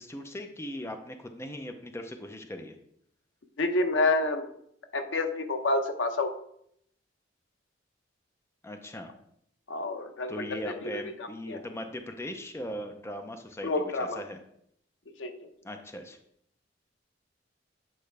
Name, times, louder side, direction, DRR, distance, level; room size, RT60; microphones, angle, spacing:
voice 1, 0.0-2.7 8.6-9.1 10.3-13.7 14.0-14.4 15.6-16.2, left 1 dB, 15° left, 6 dB, 0.5 m, -39 dB
voice 2, 3.6-4.5 4.9-6.3 9.7-10.5 10.9-11.6 13.6-14.2 15.2-15.3, left 2 dB, 90° left, 7 dB, 0.8 m, -28 dB
8.6 x 4.6 x 3.3 m, 0.71 s
head